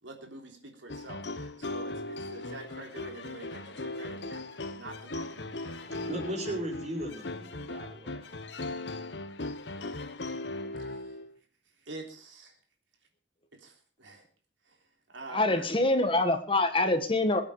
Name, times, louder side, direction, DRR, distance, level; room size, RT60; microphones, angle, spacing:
voice 1, 0.0-5.9 10.8-11.2 11.8-12.6 13.5-14.2 14.6-14.8 15.1-15.6, right 2 dB, 90° right, 2 dB, 3.4 m, -47 dB
sound 1, 0.9-11.3, left 2 dB, 70° left, 1.3 m, -38 dB
voice 2, 5.8-8.3, right 1 dB, 40° right, -1 dB, 6.0 m, -37 dB
voice 3, 15.3-17.4, left 2 dB, 30° left, 7 dB, 1.5 m, -25 dB
22.5 x 8.8 x 4.9 m, 0.41 s
head